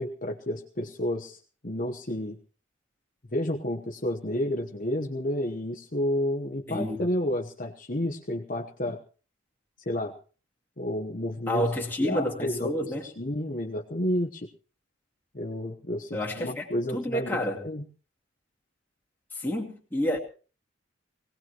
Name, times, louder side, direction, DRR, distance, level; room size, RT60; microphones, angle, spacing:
voice 1, 0.0-2.4 3.3-9.0 9.8-10.1 10.8-11.6 12.0-14.5 15.3-17.9, left 1 dB, 40° left, 1.1 m, -31 dB
voice 2, 6.7-7.1 11.5-13.0 16.1-16.6 16.9-17.6 19.4-20.2, equal, 10° left, 2.4 m, -29 dB
21.5 x 18.0 x 3.0 m
head